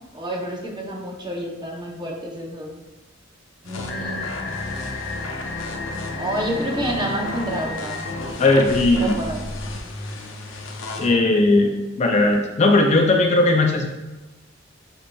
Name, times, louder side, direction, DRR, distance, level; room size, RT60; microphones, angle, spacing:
voice 1, 0.1-2.8 3.6-4.3 6.2-8.0 8.9-9.5 11.0-11.2, right 1 dB, 25° right, 0 dB, 0.6 m, -29 dB
sound 1, 3.6-11.1, left 2 dB, 80° left, 0.6 m, -31 dB
voice 2, 8.4-9.2 11.0-13.9, left 2 dB, 35° left, 2 dB, 0.4 m, -17 dB
7.9 x 2.7 x 2.2 m, 1.1 s
head